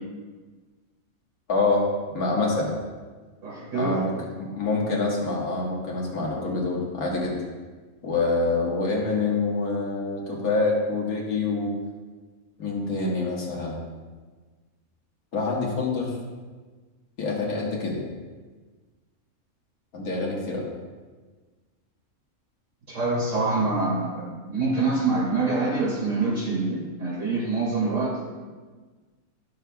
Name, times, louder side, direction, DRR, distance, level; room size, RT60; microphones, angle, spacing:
voice 1, 1.5-1.8 2.1-2.8 3.7-7.4 8.0-11.7 12.6-13.8 15.3-16.1 17.2-18.0 19.9-20.7, left 3 dB, 75° left, -3 dB, 1.9 m, -26 dB
voice 2, 3.4-3.9 22.9-28.2, right 3 dB, 55° right, -7 dB, 3.0 m, -25 dB
12.0 x 6.5 x 2.3 m, 1.4 s
omnidirectional pair, 1.5 m